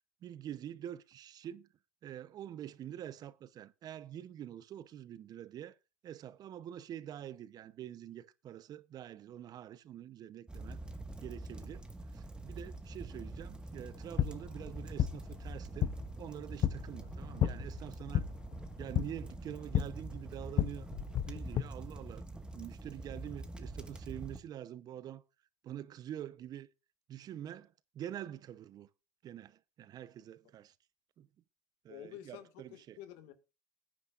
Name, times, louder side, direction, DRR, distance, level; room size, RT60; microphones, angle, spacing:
voice 1, 0.2-1.7 2.0-5.8 6.0-10.8 11.2-15.9 16.2-18.3 18.8-20.9 21.3-22.3 22.5-25.2 25.6-26.7 27.1-28.9 29.2-30.7 31.2-31.3 31.8-33.0, right 11 dB, 50° right, 0.8 m, -46 dB
sound 1, 10.5-24.4, right 2 dB, 10° right, 1.6 m, -45 dB
sound 2, 13.8-21.6, left 11 dB, 55° left, 0.8 m, -35 dB
voice 2, 31.9-33.3, left 12 dB, 75° left, 1.9 m, -50 dB
19.0 x 9.7 x 2.5 m
supercardioid pair, 80°, 8 cm